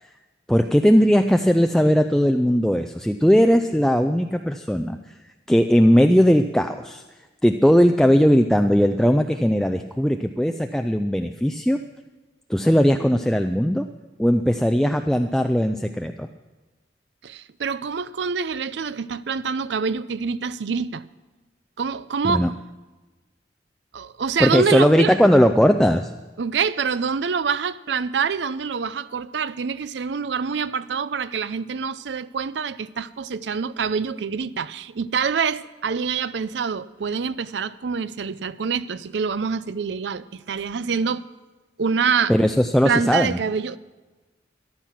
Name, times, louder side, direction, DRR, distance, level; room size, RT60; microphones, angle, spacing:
voice 1, 0.5-5.1 5.5-7.0 7.4-11.8 12.5-13.9 14.2-16.3 22.2-22.5 24.4-26.1 42.3-43.4, equal, 5° left, 0.3 m, -18 dB
voice 2, 17.2-21.0 21.8-22.5 23.9-25.2 26.4-41.2 41.8-42.3 42.8-43.8, right 5 dB, 75° right, 0.5 m, -26 dB
13.5 x 12.0 x 5.9 m
head